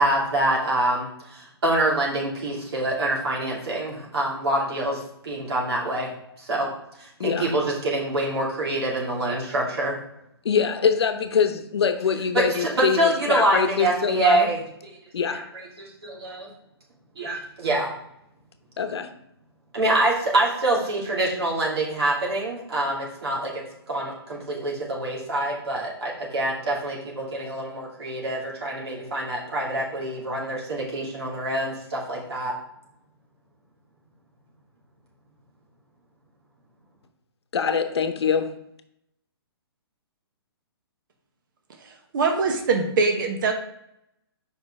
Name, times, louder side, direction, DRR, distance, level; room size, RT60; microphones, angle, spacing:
voice 1, 0.0-6.1 6.4-6.7 7.0-10.0 12.3-14.6 15.3-16.5 17.2-17.9 19.7-23.5 23.9-32.5, right 1 dB, 75° right, -4 dB, 2.8 m, -25 dB
voice 2, 7.2-7.5 10.4-14.5 15.1-15.4 18.8-19.1 37.5-38.5, left 6 dB, 80° left, 9 dB, 0.8 m, -24 dB
voice 3, 41.8-43.5, right 4 dB, 50° right, 4 dB, 1.1 m, -23 dB
5.2 x 5.2 x 4.8 m, 0.77 s
hypercardioid pair, 165°, 13 cm